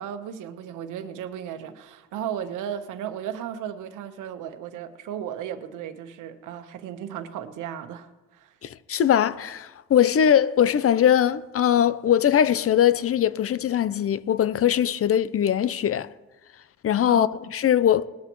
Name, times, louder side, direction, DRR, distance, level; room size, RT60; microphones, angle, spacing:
voice 1, 0.0-8.5 17.1-17.3, right 9 dB, 85° right, 1.2 m, -35 dB
voice 2, 8.6-16.1 16.8-18.1, left 9 dB, 50° left, 0.6 m, -21 dB
19.5 x 12.5 x 3.1 m
cardioid pair, 90°, 30 cm